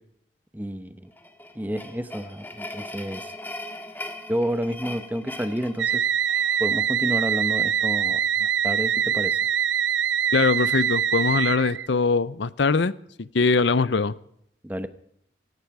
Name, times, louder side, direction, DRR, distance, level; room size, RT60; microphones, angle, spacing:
voice 1, 0.5-1.1 1.5-3.3 4.3-6.0 6.6-9.4 14.6-14.9, equal, 10° right, 11 dB, 0.9 m, -30 dB
sound 1, 1.1-6.6, left 2 dB, 10° left, 1.7 m, -39 dB
sound 2, 5.8-11.9, right 8 dB, 70° right, 0.6 m, -24 dB
voice 2, 10.3-12.9 13.2-14.1, left 4 dB, 70° left, 18 dB, 0.7 m, -22 dB
17.5 x 17.0 x 4.8 m, 0.71 s
head